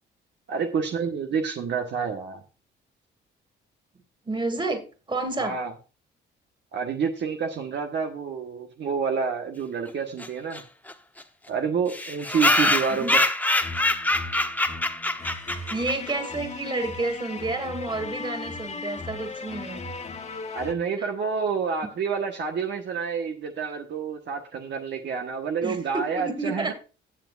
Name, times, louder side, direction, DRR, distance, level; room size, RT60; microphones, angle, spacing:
voice 1, 0.5-2.4 5.4-5.7 6.7-10.6 11.5-13.1 20.5-26.7, right 6 dB, 65° right, 4 dB, 1.3 m, -28 dB
voice 2, 4.3-5.6 12.9-13.2 15.7-19.8 21.0-21.1 25.6-26.7, right 3 dB, 25° right, 6 dB, 2.6 m, -30 dB
sound 1, 10.2-10.3 10.5-10.6 10.9-11.0 11.2-11.3 11.9-16.1, left 1 dB, 10° left, 0.9 m, -24 dB
sound 2, 13.6-20.7, left 4 dB, 35° left, 1.5 m, -37 dB
16.0 x 7.3 x 2.5 m, 0.33 s
cardioid pair, 90°, 20 cm